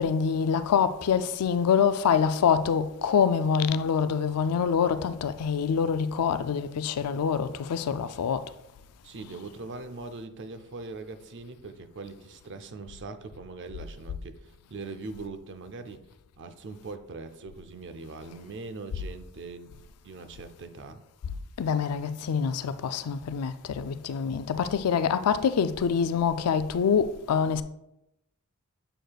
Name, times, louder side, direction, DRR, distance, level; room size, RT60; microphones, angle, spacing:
voice 1, 0.0-8.5 21.6-27.6, left 7 dB, 85° left, 0.4 m, -25 dB
voice 2, 9.0-16.0 16.4-21.0, right 3 dB, 55° right, 0.5 m, -41 dB
7.6 x 6.6 x 2.3 m
head